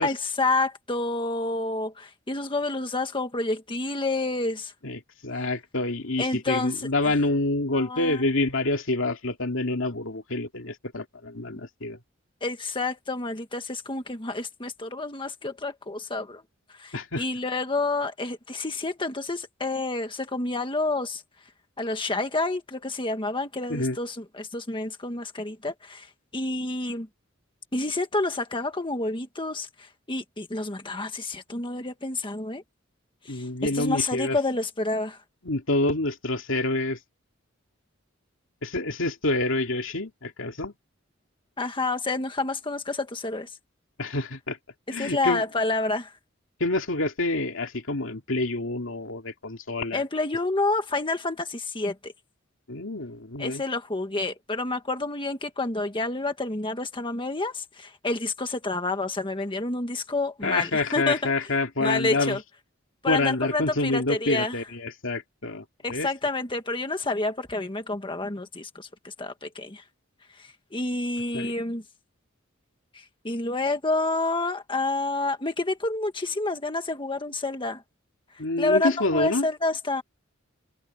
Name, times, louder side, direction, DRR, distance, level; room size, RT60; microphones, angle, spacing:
voice 1, 0.0-4.7 6.2-6.7 7.7-8.2 12.4-16.4 16.8-21.2 21.8-27.1 27.7-32.6 33.2-35.2 41.6-43.6 45.0-46.1 49.9-52.1 53.4-61.3 61.8-62.4 63.0-64.6 65.8-69.8 70.4-71.8 72.9-77.8 78.6-80.0, left 2 dB, 25° left, 1.6 m, -29 dB
voice 2, 4.8-12.0 16.9-17.2 23.7-24.0 33.3-34.4 35.4-37.0 38.6-40.7 44.0-44.6 44.9-45.4 46.6-50.0 52.7-53.6 60.4-62.4 63.1-66.1 71.3-71.5 78.4-79.5, left 2 dB, 70° left, 2.7 m, -27 dB
head